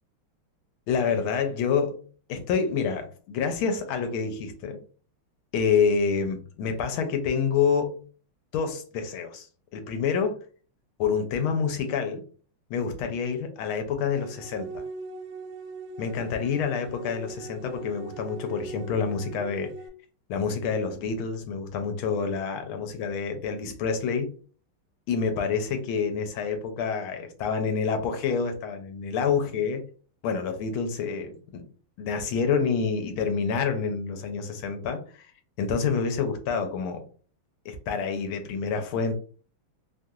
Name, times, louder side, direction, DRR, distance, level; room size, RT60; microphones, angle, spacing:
voice 1, 0.9-2.0 2.3-4.8 5.5-8.0 8.5-9.5 9.7-10.4 11.0-12.2 12.7-14.8 16.0-19.7 20.3-24.4 25.1-29.9 30.2-31.7 32.0-35.3 35.6-37.0 37.6-39.1, left 6 dB, 80° left, 6 dB, 1.4 m, -27 dB
sound 1, 14.1-19.9, right 4 dB, 80° right, 1.5 m, -41 dB
3.4 x 2.3 x 2.7 m, 0.41 s
omnidirectional pair, 2.4 m